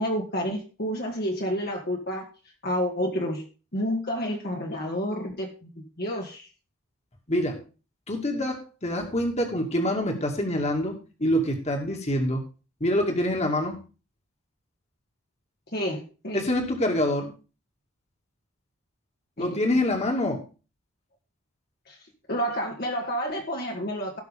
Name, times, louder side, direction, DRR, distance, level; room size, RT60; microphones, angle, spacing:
voice 1, 0.0-2.3 2.6-3.4 3.7-6.5 15.7-16.5 19.4-19.8 21.9-22.0 22.3-24.2, equal, 50° left, 0 dB, 2.0 m, -30 dB
voice 2, 7.3-7.6 8.1-12.4 12.8-13.8 16.3-17.3 19.4-20.4, left 1 dB, 30° left, 3 dB, 2.3 m, -26 dB
17.5 x 6.0 x 3.6 m, 0.33 s
head